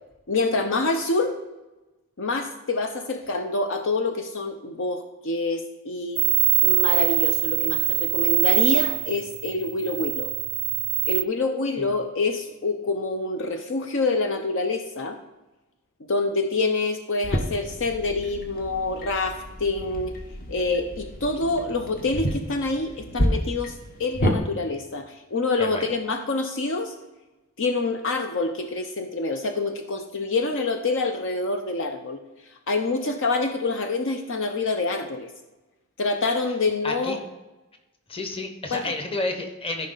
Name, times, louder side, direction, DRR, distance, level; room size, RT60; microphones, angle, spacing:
voice 1, 0.3-1.4 2.2-6.2 6.6-10.3 11.0-15.2 16.1-20.1 20.5-26.9 27.6-32.2 32.7-35.3 36.0-37.2 38.7-38.9, left 3 dB, 60° left, 6 dB, 0.7 m, -26 dB
sound 1, 6.2-11.2, right 27 dB, 50° right, 0.4 m, -23 dB
sound 2, 17.2-24.4, equal, 40° left, 1.1 m, -30 dB
voice 2, 25.6-25.9 36.8-37.2 38.1-39.9, left 2 dB, 25° left, 5 dB, 1.2 m, -30 dB
13.5 x 5.4 x 4.0 m, 1.1 s
head